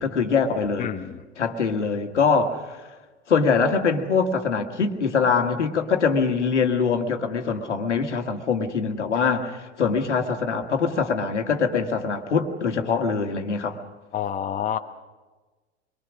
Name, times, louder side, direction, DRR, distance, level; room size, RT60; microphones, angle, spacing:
voice 1, 0.0-0.9 1.4-2.8 3.3-13.8, left 5 dB, 80° left, 5 dB, 1.9 m, -23 dB
voice 2, 0.8-1.2 14.1-14.8, left 9 dB, 20° left, 6 dB, 1.1 m, -28 dB
24.5 x 22.5 x 6.2 m, 1.3 s
figure-of-eight pair, 85°, 35 cm